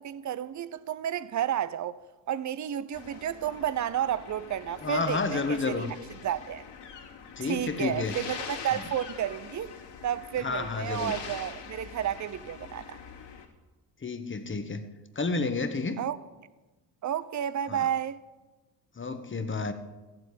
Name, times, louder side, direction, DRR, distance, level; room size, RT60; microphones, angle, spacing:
voice 1, 0.0-2.0 2.3-6.0 6.2-6.6 7.4-9.7 10.0-13.0 16.0-16.2 17.0-18.2, right 10 dB, 35° right, 0.8 m, -31 dB
sound 1, 2.9-13.4, left 6 dB, 55° left, 3.2 m, -44 dB
voice 2, 4.8-5.9 7.4-8.2 10.4-11.1 14.0-14.8 15.1-16.0 17.7-17.8 19.0-19.7, left 4 dB, 25° left, 1.5 m, -30 dB
14.0 x 7.8 x 8.7 m
hypercardioid pair, 60°, 48 cm